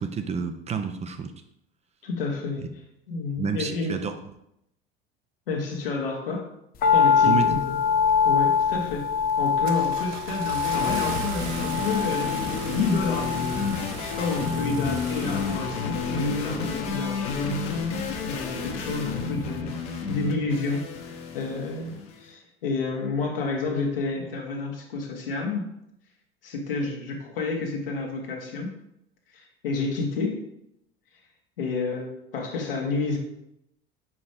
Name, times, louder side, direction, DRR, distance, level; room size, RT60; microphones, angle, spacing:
voice 1, 0.0-1.3 3.4-4.1 7.2-7.5, right 6 dB, 20° right, 7 dB, 0.5 m, -29 dB
voice 2, 2.0-2.7 3.1-4.0 5.5-6.5 6.9-7.8 8.2-13.5 14.2-17.7 18.2-19.8 20.1-25.7 26.4-28.7 29.3-30.4 31.6-33.2, left 3 dB, 70° left, 1 dB, 1.4 m, -30 dB
sound 1, 6.8-19.1 19.4-19.5, left 6 dB, 30° left, 0.7 m, -26 dB
Car / Engine starting, 8.5-8.8 9.3-16.3, right 7 dB, 55° right, 0.8 m, -39 dB
sound 2, 10.6-22.1, left 5 dB, 50° left, 1.2 m, -31 dB
5.1 x 4.9 x 5.0 m, 0.80 s
figure-of-eight pair, 65°, 29 cm